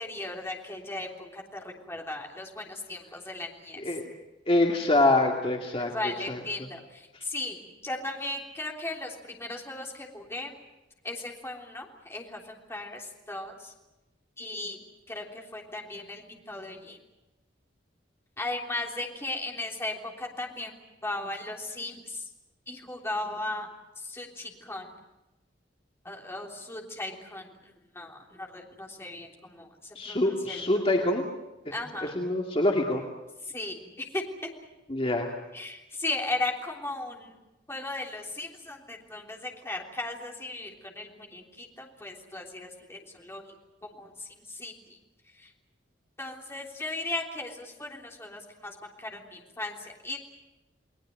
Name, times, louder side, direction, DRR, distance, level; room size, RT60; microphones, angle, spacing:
voice 1, 0.0-3.8 5.8-6.8 7.2-10.5 11.0-13.7 14.4-14.8 15.1-17.0 18.4-20.8 21.0-22.2 22.7-23.7 24.1-24.9 26.1-27.5 28.0-29.3 29.6-29.7 30.1-30.2 30.5-30.6 31.7-32.1 33.5-34.2 35.5-37.3 37.7-43.5 44.0-44.1 44.5-44.7 46.2-50.2, left 2 dB, 15° left, 0 dB, 3.4 m, -36 dB
voice 2, 4.5-6.7 30.0-31.2 31.7-33.0 34.9-35.3, left 2 dB, 30° left, 1 dB, 2.4 m, -26 dB
30.0 x 20.0 x 7.7 m, 1.1 s
head